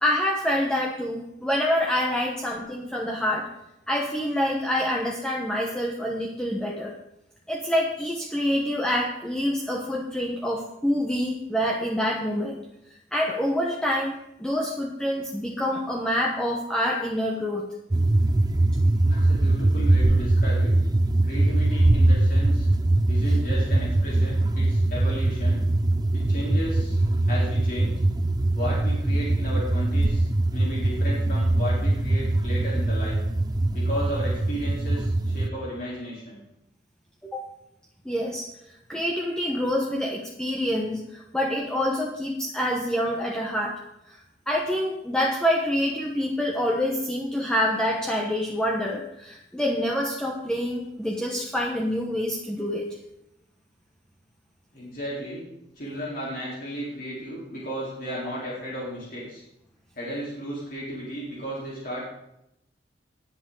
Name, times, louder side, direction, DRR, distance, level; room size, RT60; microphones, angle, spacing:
voice 1, 0.0-3.5 3.9-6.9 7.5-12.6 12.9-17.6 37.2-37.4 38.0-38.5 38.9-43.7 44.1-44.2 44.5-52.9, equal, 5° left, -2 dB, 1.3 m, -26 dB
sound 1, 17.9-35.5, right 2 dB, 20° right, 0.5 m, -22 dB
voice 2, 19.1-20.7 21.2-22.7 23.1-25.6 26.1-28.0 28.5-33.2 33.7-36.4 54.7-55.5 55.8-59.4 60.0-62.0, equal, 50° left, -6 dB, 4.1 m, -34 dB
20.5 x 7.9 x 4.0 m, 0.83 s
head